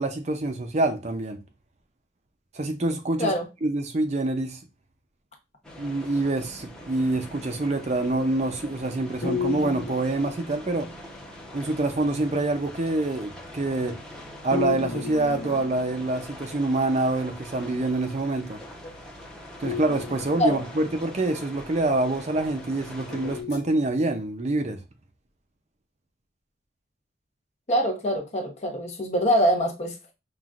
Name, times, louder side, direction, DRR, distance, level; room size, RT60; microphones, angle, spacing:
voice 1, 0.0-1.4 2.5-3.3 3.6-4.6 5.8-10.9 11.5-14.0 14.4-18.6 19.6-24.8, right 2 dB, 40° right, 0.6 m, -26 dB
sound 1, 5.6-23.4, left 1 dB, 5° left, 0.8 m, -43 dB
sound 2, 9.2-10.9 14.5-16.3 19.6-21.2 23.1-24.3, left 5 dB, 60° left, 1.1 m, -34 dB
voice 2, 27.7-29.9, equal, 40° left, 0.8 m, -24 dB
5.7 x 2.4 x 2.4 m
head